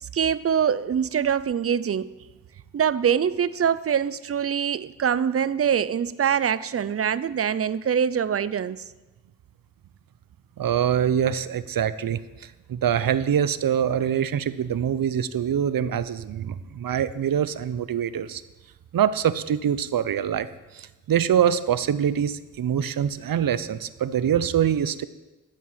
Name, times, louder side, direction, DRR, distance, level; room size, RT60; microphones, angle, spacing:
voice 1, 0.1-2.1 2.7-8.8, right 8 dB, 45° right, 17 dB, 0.5 m, -24 dB
voice 2, 10.6-18.4 18.9-20.5 20.7-25.0, right 9 dB, 85° right, 15 dB, 0.6 m, -24 dB
12.0 x 7.6 x 7.3 m, 1.1 s
wide cardioid pair, 145°, 33 cm